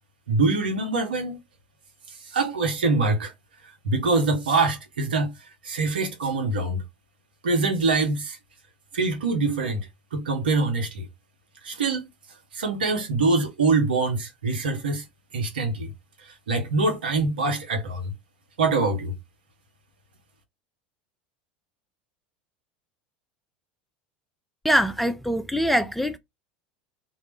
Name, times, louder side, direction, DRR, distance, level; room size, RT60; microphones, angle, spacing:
voice 1, 0.3-1.4 2.3-3.3 3.8-5.3 5.6-6.8 7.4-8.4 8.9-11.1 11.6-12.0 12.5-15.0 15.3-15.9 16.5-18.1 18.6-19.1, right 3 dB, 80° right, 0.7 m, -24 dB
voice 2, 24.6-26.2, equal, ahead, 0.3 m, -23 dB
2.1 x 2.0 x 3.1 m
hypercardioid pair, 80°, 5 cm